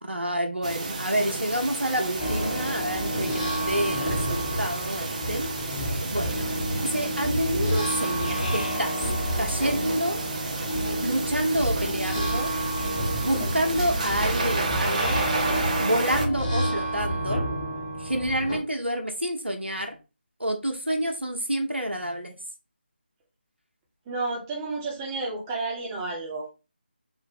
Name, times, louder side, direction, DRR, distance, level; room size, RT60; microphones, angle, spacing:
voice 1, 0.0-6.5 6.8-9.0 9.4-10.2 11.0-12.5 13.2-15.2 15.8-17.4 18.0-20.0 20.4-22.3, equal, 85° right, 3 dB, 1.1 m, -28 dB
sound 1, 0.6-16.3, right 3 dB, 40° right, 0.7 m, -32 dB
sound 2, 2.2-18.6, equal, 30° left, 1.0 m, -29 dB
voice 2, 24.1-26.5, right 3 dB, 15° right, -2 dB, 0.9 m, -31 dB
3.8 x 2.1 x 4.2 m, 0.30 s
figure-of-eight pair, 160°, 6 cm